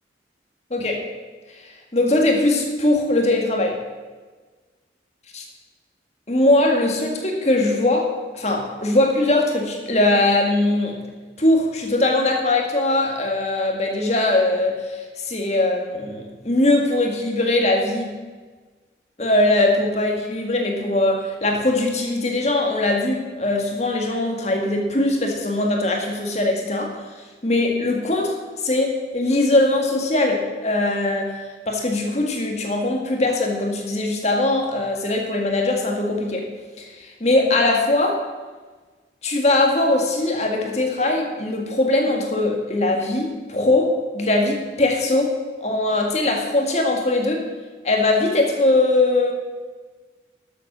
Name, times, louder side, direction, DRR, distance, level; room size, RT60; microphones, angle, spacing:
voice 1, 0.7-1.0 1.5-3.8 5.3-5.4 6.3-11.1 11.4-18.2 19.2-31.4 31.7-36.5 36.8-38.2 39.2-47.5 47.8-49.3, left 2 dB, 35° left, 2 dB, 1.8 m, -21 dB
12.5 x 7.6 x 6.3 m, 1.4 s
head